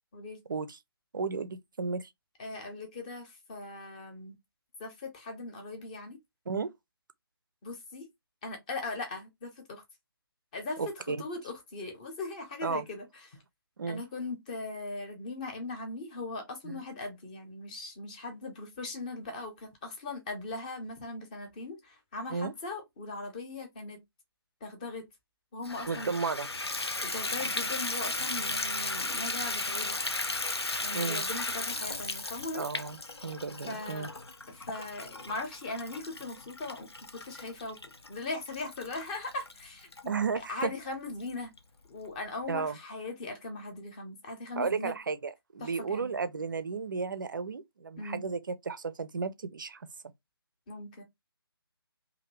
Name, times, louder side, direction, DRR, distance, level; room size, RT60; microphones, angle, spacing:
voice 1, 0.5-0.8 1.1-2.1 6.5-6.7 10.8-11.2 12.6-12.9 13.8-14.0 16.6-16.8 22.3-22.5 25.9-26.5 30.9-31.2 32.5-34.1 40.1-40.7 42.5-42.8 44.6-49.9, right 5 dB, 50° right, 0.4 m, -33 dB
voice 2, 2.4-4.4 4.8-6.2 7.6-8.1 8.4-9.8 10.5-10.9 11.2-13.4 13.9-24.0 24.6-25.0 25.5-26.1 27.0-30.0 30.8-32.7 33.7-34.1 34.5-36.9 37.1-37.8 38.1-40.1 40.5-41.5 41.9-45.0 45.6-46.1 48.0-48.2 50.7-51.0, left 2 dB, 20° left, 0.7 m, -39 dB
Water tap faucet / Bathtub (filling or washing), 25.6-40.0 40.6-40.7 41.2-41.3 41.6-41.7, left 2 dB, 85° left, 0.5 m, -35 dB
2.6 x 2.5 x 3.1 m
figure-of-eight pair, 145°, 13 cm